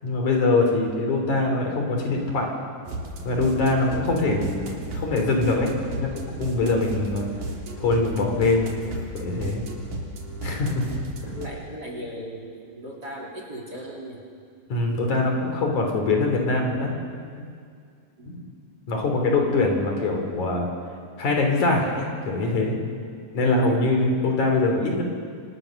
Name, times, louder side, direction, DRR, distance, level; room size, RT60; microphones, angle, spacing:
voice 1, 0.0-2.5 3.3-7.2 7.8-8.7 9.1-9.6 10.4-10.8 11.2-11.3 14.7-17.0 17.3-17.5 18.3-18.5 18.9-20.7 21.2-22.8 23.3-25.0, left 2 dB, 60° left, 2 dB, 4.9 m, -23 dB
sound 1, 2.9-11.5, right 2 dB, 75° right, 4.8 m, -34 dB
voice 2, 11.3-14.2 18.2-18.4 23.7-23.8, equal, 30° right, -1 dB, 4.1 m, -37 dB
27.5 x 26.5 x 6.7 m, 2.2 s
omnidirectional pair, 3.8 m